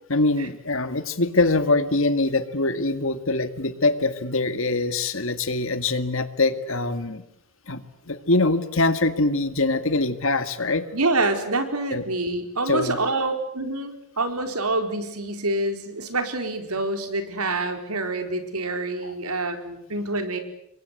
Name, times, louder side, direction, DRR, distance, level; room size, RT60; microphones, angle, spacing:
voice 1, 0.1-7.2 7.7-10.9 11.9-12.0 12.7-13.0 19.0-19.2, left 2 dB, 60° left, 11 dB, 2.1 m, -23 dB
voice 2, 10.9-20.4, right 2 dB, 90° right, 7 dB, 4.4 m, -26 dB
29.0 x 23.5 x 8.4 m, 0.74 s
head